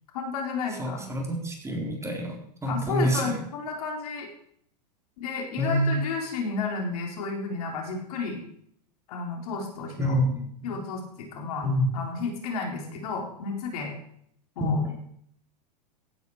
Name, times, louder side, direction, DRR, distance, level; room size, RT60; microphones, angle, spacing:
voice 1, 0.1-1.1 2.7-4.3 5.2-8.4 9.1-10.2 10.6-11.7 11.9-13.9 14.6-14.8, left 4 dB, 65° left, 1 dB, 4.0 m, -32 dB
voice 2, 0.8-2.3 2.6-3.4 5.6-5.9 10.0-10.7 11.6-11.9 14.6-14.7, equal, 15° right, 1 dB, 3.9 m, -27 dB
16.5 x 9.8 x 4.8 m, 0.68 s
hypercardioid pair, 105°, 21 cm